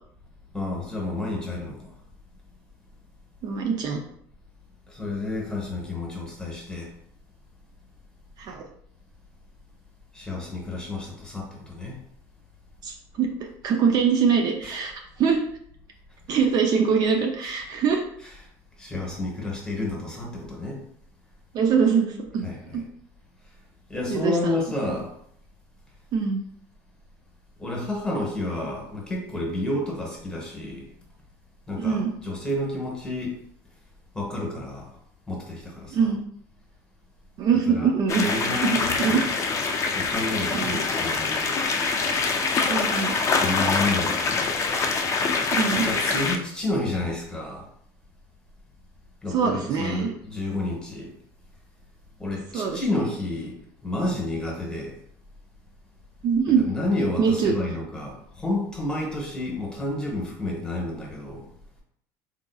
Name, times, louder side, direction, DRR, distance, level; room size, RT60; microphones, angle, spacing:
voice 1, 0.5-1.9 4.9-6.9 10.1-12.0 16.3-16.4 17.4-17.5 18.8-20.8 22.4-22.8 23.9-25.1 27.6-30.9 31.7-33.4 34.1-35.0 35.3-36.1 37.7-37.9 38.1-39.2 39.9-41.6 43.4-44.5 45.8-47.7 49.2-51.1 52.2-53.6 53.8-54.9 56.6-61.5, left 2 dB, 10° left, -1 dB, 1.0 m, -30 dB
voice 2, 3.4-4.0 8.4-8.6 12.8-14.9 15.2-15.4 16.3-18.0 21.5-22.5 22.7-22.8 24.1-24.5 26.1-26.4 31.8-32.1 35.9-36.3 37.4-38.3 38.6-39.2 40.5-40.8 42.7-43.2 45.5-45.9 49.3-50.1 52.5-53.0 56.2-56.6 57.2-57.5, right 6 dB, 50° right, 3 dB, 0.5 m, -23 dB
sound 1, 38.1-46.4, left 4 dB, 35° left, 0.5 m, -25 dB
3.7 x 2.7 x 2.3 m, 0.66 s
cardioid pair, 115°, 9 cm